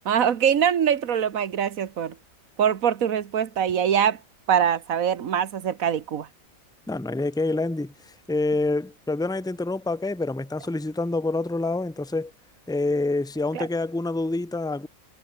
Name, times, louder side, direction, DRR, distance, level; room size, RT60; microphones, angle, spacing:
voice 1, 0.0-2.1 2.6-4.2 4.5-6.3 13.5-13.7, right 8 dB, 85° right, 1.6 m, -23 dB
voice 2, 6.9-12.3 12.7-14.9, left 2 dB, 5° left, 1.0 m, -27 dB
omnidirectional pair, 1.4 m